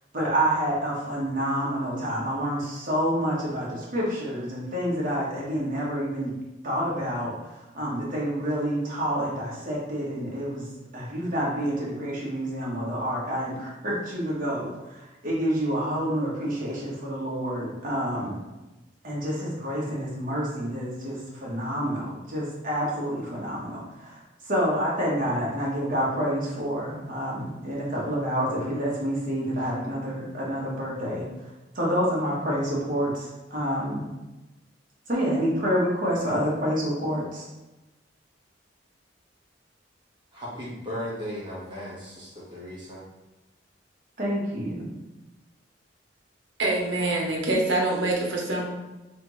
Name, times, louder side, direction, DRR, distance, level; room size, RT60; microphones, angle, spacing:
voice 1, 0.1-6.3 6.6-7.3 7.7-10.7 10.9-18.4 19.0-31.2 31.7-34.0 35.1-37.5 44.2-44.9, equal, 50° right, -5 dB, 1.3 m, -28 dB
voice 2, 40.3-43.0, equal, 25° right, -7 dB, 1.4 m, -36 dB
voice 3, 46.6-48.7, right 2 dB, 90° right, 0 dB, 0.9 m, -25 dB
3.6 x 3.4 x 3.1 m, 1.1 s
head